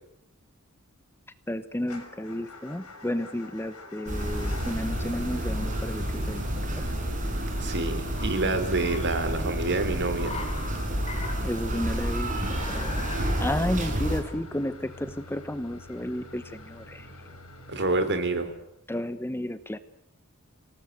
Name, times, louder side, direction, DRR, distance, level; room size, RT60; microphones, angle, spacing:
voice 1, 1.5-6.8 11.4-12.3 12.7-13.1 13.4-17.1 18.9-19.8, left 1 dB, 10° left, 13 dB, 1.0 m, -32 dB
Motor vehicle (road) / Engine starting / Idling, 1.8-18.8, left 1 dB, 80° left, 6.8 m, -46 dB
sound 1, 4.1-14.2, right 1 dB, 35° right, 6.2 m, -30 dB
Car, 5.5-17.4, left 3 dB, 30° left, 3.9 m, -45 dB
voice 2, 7.6-10.4 17.7-18.5, right 2 dB, 55° right, 10 dB, 3.9 m, -27 dB
26.0 x 18.5 x 9.2 m, 0.74 s
head